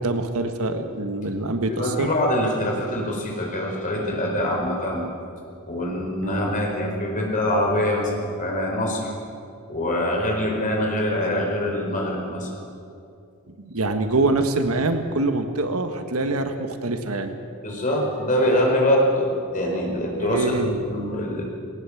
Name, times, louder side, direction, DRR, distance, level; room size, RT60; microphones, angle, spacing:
voice 1, 0.0-2.1 6.2-6.5 13.6-17.3 20.2-20.9, right 2 dB, 75° right, 7 dB, 1.5 m, -25 dB
voice 2, 1.7-5.1 5.7-9.1 9.7-12.5 17.6-21.4, left 1 dB, 40° left, 0 dB, 4.5 m, -24 dB
20.0 x 18.5 x 7.2 m, 2.5 s
head